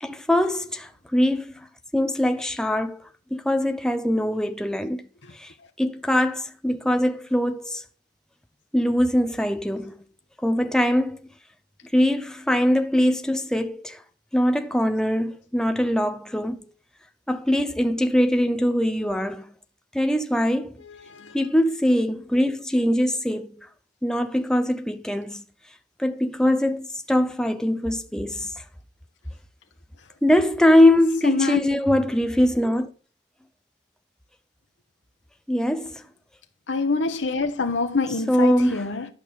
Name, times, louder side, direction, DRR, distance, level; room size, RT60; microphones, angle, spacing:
voice 1, 0.0-1.5 1.9-5.0 5.3-7.8 8.7-10.0 10.4-11.2 11.9-14.0 14.3-16.7 17.3-19.5 19.9-20.7 21.3-23.7 24.0-25.4 26.0-28.6 30.2-32.9 35.5-36.0 38.3-38.9, left 1 dB, 5° left, 0.7 m, -22 dB
voice 2, 20.8-21.4 31.2-31.6 36.7-39.1, left 4 dB, 85° left, 1.1 m, -25 dB
11.5 x 6.0 x 6.9 m
head